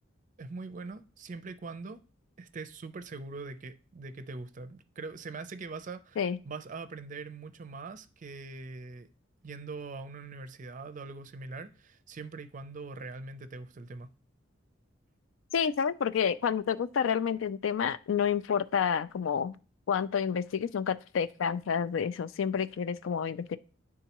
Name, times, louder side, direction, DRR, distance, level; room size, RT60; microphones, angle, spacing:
voice 1, 0.4-2.0 2.4-9.1 9.4-14.1, right 3 dB, 40° right, 0.5 m, -42 dB
voice 2, 15.5-19.6 19.9-23.6, left 7 dB, 80° left, 0.4 m, -29 dB
10.0 x 3.6 x 2.9 m
head